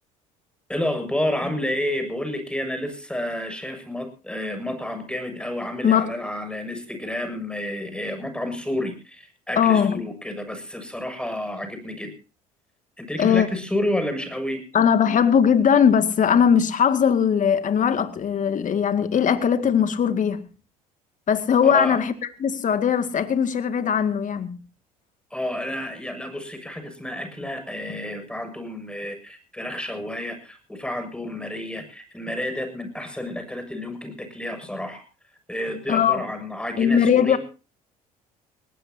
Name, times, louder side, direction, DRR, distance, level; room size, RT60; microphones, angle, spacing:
voice 1, 0.7-12.1 13.0-14.6 21.6-22.0 25.3-35.0 35.5-37.4, left 1 dB, 5° left, 7.2 m, -30 dB
voice 2, 9.6-10.0 13.2-13.5 14.7-20.4 21.3-22.1 22.4-24.6 35.9-36.2 36.8-37.4, left 7 dB, 45° left, 2.2 m, -20 dB
20.0 x 19.0 x 2.8 m
hypercardioid pair, 65°, 19 cm